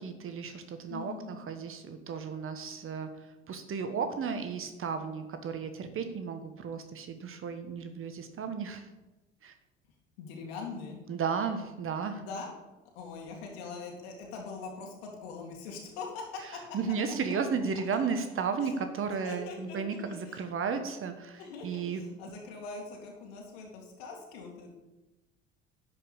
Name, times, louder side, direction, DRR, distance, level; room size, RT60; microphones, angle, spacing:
voice 1, 0.0-8.9 9.4-9.5 11.1-12.2 16.7-22.0, right 6 dB, 40° right, 8 dB, 1.3 m, -34 dB
voice 2, 0.9-1.4 10.2-11.0 12.2-12.5 12.9-16.2 16.5-16.6 17.1-17.2 18.6-18.7 19.2-20.4 21.4-24.7, left 4 dB, 70° left, 0 dB, 2.4 m, -42 dB
11.5 x 5.4 x 7.1 m, 1.0 s
figure-of-eight pair, 60°, 32 cm